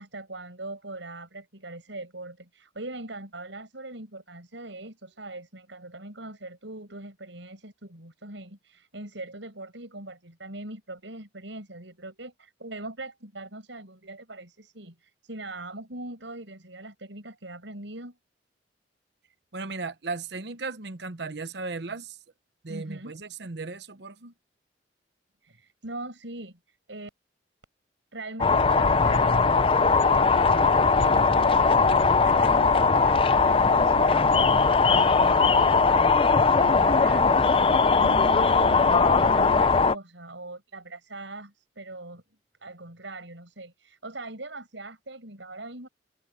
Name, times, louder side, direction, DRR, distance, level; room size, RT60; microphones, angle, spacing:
voice 1, 0.0-18.2 22.7-23.2 25.4-27.1 28.1-42.2 42.6-45.9, right 2 dB, 80° right, 6.6 m, -41 dB
voice 2, 19.5-22.2 22.6-24.3, right 3 dB, 60° right, 1.0 m, -36 dB
sound 1, 28.4-39.9, left 4 dB, 30° left, 0.6 m, -20 dB
head